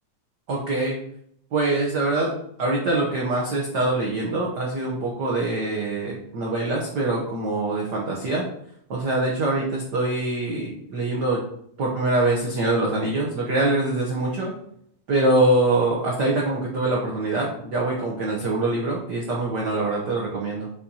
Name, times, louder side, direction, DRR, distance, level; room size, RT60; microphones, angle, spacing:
voice 1, 0.5-0.9 1.5-2.3 2.6-8.4 8.9-11.4 11.8-14.5 15.1-20.7, right 2 dB, 85° right, -3 dB, 0.9 m, -24 dB
7.3 x 5.2 x 2.8 m, 0.69 s
omnidirectional pair, 3.5 m